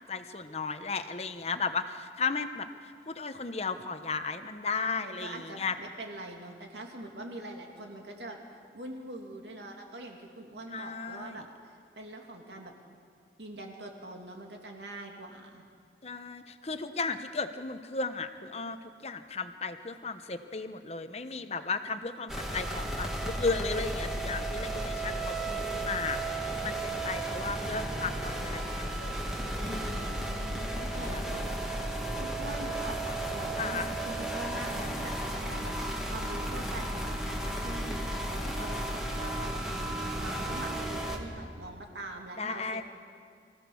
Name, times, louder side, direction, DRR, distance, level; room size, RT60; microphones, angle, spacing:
voice 1, 0.1-2.7 3.1-5.7 10.7-11.4 16.0-29.1 29.5-30.2 30.9-31.2 33.6-33.9 42.4-42.8, left 4 dB, 35° left, 9 dB, 0.9 m, -35 dB
voice 2, 4.9-12.7 13.4-15.6 29.8-31.4 32.2-35.7 36.1-39.6 40.2-42.8, right 1 dB, 75° right, 2 dB, 2.6 m, -43 dB
sound 1, 22.3-41.2, right 1 dB, 5° right, 1.8 m, -34 dB
24.5 x 15.5 x 7.1 m, 2.2 s
head